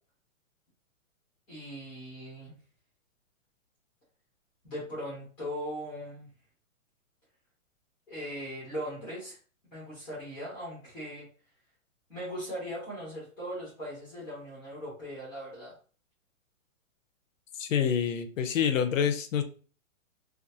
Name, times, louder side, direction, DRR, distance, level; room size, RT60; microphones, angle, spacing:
voice 1, 1.5-2.6 4.6-6.3 8.1-9.4 9.7-11.2 12.1-15.8, equal, 5° left, -8 dB, 0.6 m, -39 dB
voice 2, 17.6-19.4, left 8 dB, 70° left, 8 dB, 0.5 m, -27 dB
2.4 x 2.3 x 2.6 m, 0.39 s
hypercardioid pair, 180°, 41 cm